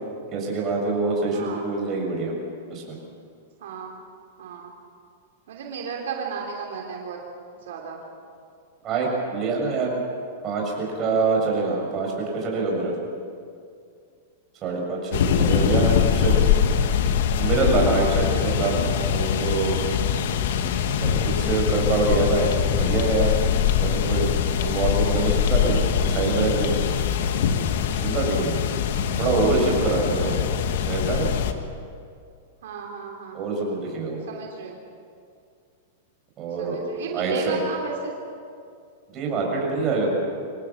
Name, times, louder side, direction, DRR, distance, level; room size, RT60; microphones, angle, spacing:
voice 1, 0.3-2.3 2.7-3.0 8.8-9.9 10.4-12.9 14.6-16.4 17.4-19.8 21.0-23.3 23.8-24.3 24.6-26.8 27.9-28.6 29.2-30.4 30.8-31.3 33.3-34.2 36.4-36.8 37.1-37.6 39.1-40.1, right 3 dB, 30° right, -1 dB, 7.4 m, -25 dB
voice 2, 1.3-1.6 3.6-4.0 4.4-4.7 5.5-7.2 7.7-8.0 18.4-18.7 28.1-28.5 30.2-30.5 32.6-33.4 34.3-34.8 36.6-38.1, right 5 dB, 75° right, 0 dB, 3.2 m, -34 dB
sound 1, 15.1-31.5, left 8 dB, 70° left, 1.6 m, -23 dB
25.5 x 18.0 x 7.5 m, 2.3 s
supercardioid pair, 150°, 0 cm